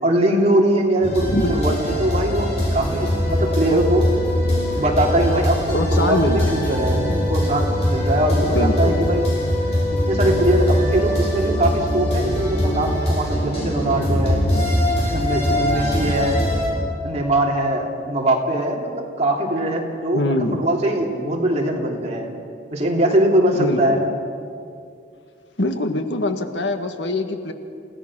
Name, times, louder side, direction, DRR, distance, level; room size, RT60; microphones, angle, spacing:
voice 1, 0.0-4.1 4.4-9.3 9.9-14.4 15.1-16.4 17.0-22.3 22.7-24.0, right 1 dB, 35° right, -1 dB, 3.0 m, -21 dB
sound 1, 1.0-16.7, equal, 35° left, 5.7 m, -22 dB
voice 2, 1.3-1.8 5.7-6.5 8.5-9.0 20.1-20.6 23.5-24.0 25.6-27.5, left 2 dB, 80° left, 7 dB, 1.6 m, -23 dB
28.5 x 17.0 x 6.2 m, 2.4 s
head